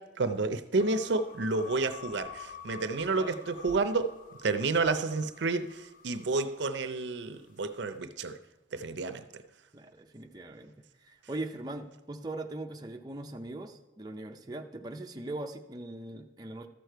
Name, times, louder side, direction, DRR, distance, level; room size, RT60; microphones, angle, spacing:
voice 1, 0.0-4.1 4.4-8.4 8.7-9.2, right 3 dB, 65° right, 0.6 m, -30 dB
sound 1, 0.8-7.1, left 6 dB, 45° left, 0.6 m, -48 dB
voice 2, 9.7-10.7 11.0-16.7, right 2 dB, 20° right, 0.5 m, -40 dB
13.5 x 6.6 x 4.6 m
head